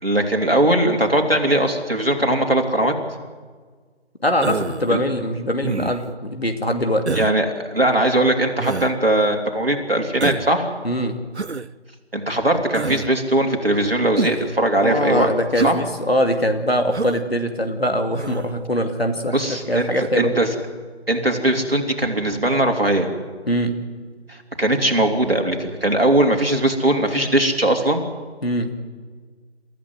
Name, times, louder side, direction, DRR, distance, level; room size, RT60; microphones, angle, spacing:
voice 1, 0.0-2.9 4.9-5.0 7.1-10.7 12.1-15.3 15.6-15.8 19.3-20.5 21.1-23.1 24.3-28.0, right 1 dB, 60° right, 2 dB, 3.3 m, -20 dB
voice 2, 4.2-7.0 10.8-11.2 14.8-19.4 19.7-20.3 23.5-23.7 28.4-28.7, equal, 65° left, 5 dB, 2.5 m, -22 dB
Human voice, 4.4-4.9 5.6-6.1 7.1-7.4 8.6-8.9 10.2-10.5 11.3-11.7 12.7-13.1 14.2-14.5 15.5-15.8 16.9-17.2 18.1-18.5, right 4 dB, 75° right, 0.7 m, -26 dB
28.0 x 14.0 x 7.9 m, 1.5 s
figure-of-eight pair, 175°, 34 cm